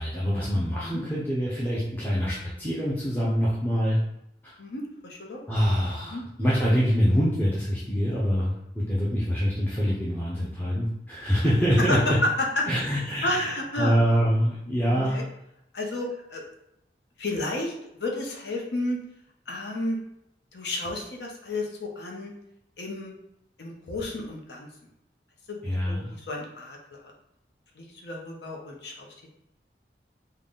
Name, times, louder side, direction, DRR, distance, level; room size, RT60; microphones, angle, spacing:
voice 1, 0.0-4.0 4.4-4.5 5.5-12.2 12.7-15.2 25.6-26.1, equal, 10° left, -8 dB, 0.6 m, -25 dB
voice 2, 4.6-5.4 6.1-6.2 11.8-12.0 13.2-14.0 14.9-15.2 15.7-16.4 17.2-17.7 18.0-19.0 19.5-20.0 20.5-22.3 22.8-23.1 23.6-24.7 25.5-26.8 27.8-29.1, left 1 dB, 80° left, 0 dB, 0.7 m, -32 dB
3.7 x 2.2 x 3.5 m, 0.80 s
head